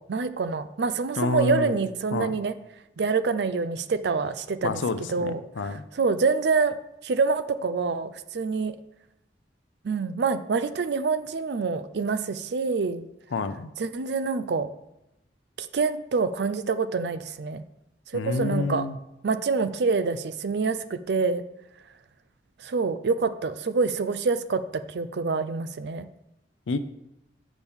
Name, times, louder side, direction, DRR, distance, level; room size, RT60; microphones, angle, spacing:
voice 1, 0.1-2.5 3.0-4.8 5.1-6.8 7.0-8.8 9.8-13.1 13.8-14.7 15.6-17.6 18.1-18.9 19.2-21.4 22.6-26.1, right 4 dB, 60° right, 12 dB, 0.4 m, -26 dB
voice 2, 1.2-1.8 2.1-2.3 4.6-5.8 13.3-13.7 18.1-19.0 26.7-26.8, left 3 dB, 80° left, 12 dB, 0.5 m, -28 dB
7.0 x 6.1 x 3.6 m, 0.87 s
head